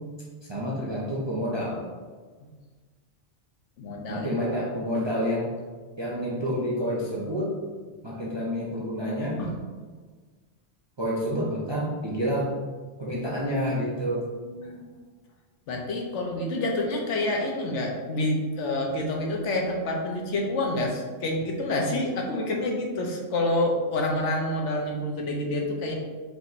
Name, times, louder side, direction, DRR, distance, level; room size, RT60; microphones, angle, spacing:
voice 1, 0.5-1.9 4.1-5.5 6.0-7.5 8.0-9.4 11.0-12.6 13.0-14.2, equal, 35° right, -5 dB, 0.4 m, -28 dB
voice 2, 3.8-4.3 9.4-9.5 14.6-14.9 15.7-25.9, left 1 dB, 75° left, 1 dB, 1.0 m, -28 dB
5.1 x 2.5 x 3.0 m, 1.4 s
omnidirectional pair, 1.3 m